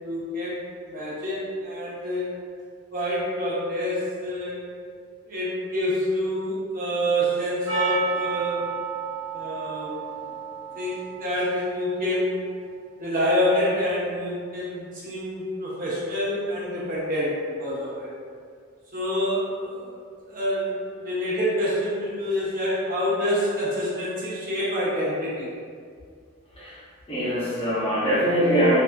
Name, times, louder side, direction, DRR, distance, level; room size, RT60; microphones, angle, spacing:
voice 1, 0.0-2.3 2.9-4.6 5.3-8.6 9.3-10.2 10.7-12.5 13.0-18.1 18.9-20.0 20.3-25.5, equal, 40° right, -8 dB, 0.8 m, -27 dB
Percussion, 7.7-12.2, right 6 dB, 60° right, 1.1 m, -32 dB
voice 2, 27.1-28.8, equal, 25° left, -8 dB, 0.7 m, -22 dB
3.5 x 2.5 x 2.4 m, 2.1 s
head